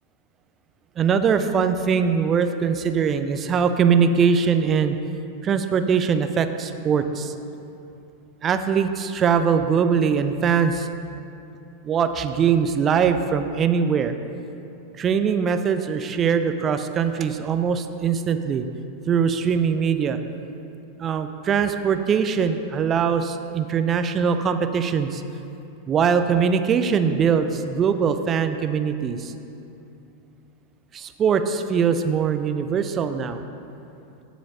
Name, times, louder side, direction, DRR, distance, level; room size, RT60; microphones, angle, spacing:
voice 1, 1.0-5.0 5.4-7.3 8.4-10.9 11.8-14.1 15.0-18.6 19.1-20.2 21.0-25.2 25.9-29.3 30.9-33.4, right 6 dB, 25° right, 9 dB, 0.5 m, -22 dB
14.5 x 5.0 x 3.8 m, 2.8 s
figure-of-eight pair, 90°, 0 cm